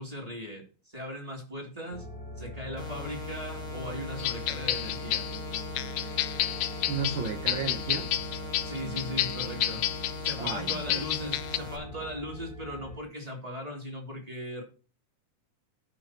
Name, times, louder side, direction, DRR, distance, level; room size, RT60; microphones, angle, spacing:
voice 1, 0.0-2.1 2.4-5.3 8.6-9.9 10.2-14.6, equal, 15° right, 0 dB, 2.7 m, -38 dB
sound 1, 1.9-12.9, equal, 85° right, 6.7 m, -42 dB
sound 2, 2.8-11.8, left 3 dB, 40° left, 1.2 m, -40 dB
sound 3, 4.2-11.6, left 14 dB, 80° left, 1.7 m, -30 dB
voice 2, 6.9-8.1 10.4-11.3, right 5 dB, 65° right, 5 dB, 1.3 m, -34 dB
15.5 x 6.4 x 2.9 m, 0.37 s
omnidirectional pair, 3.3 m